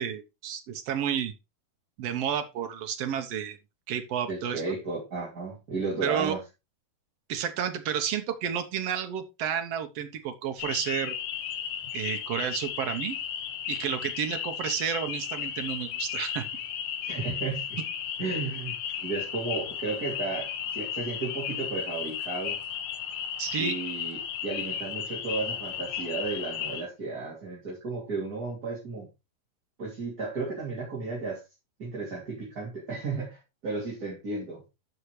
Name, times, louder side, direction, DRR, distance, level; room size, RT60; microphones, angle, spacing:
voice 1, 0.0-1.3 2.0-3.6 3.9-4.6 6.0-6.3 7.3-11.1 11.9-13.2 13.7-16.5 23.4-23.8, right 8 dB, 65° right, 6 dB, 1.6 m, -31 dB
voice 2, 4.3-6.4 17.0-17.7 18.2-22.6 23.6-29.1 29.8-31.4 31.8-34.6, right 3 dB, 30° right, -4 dB, 2.9 m, -34 dB
sound 1, 10.6-26.8, left 9 dB, 85° left, 2.8 m, -34 dB
13.0 x 5.7 x 3.2 m, 0.25 s
omnidirectional pair, 4.0 m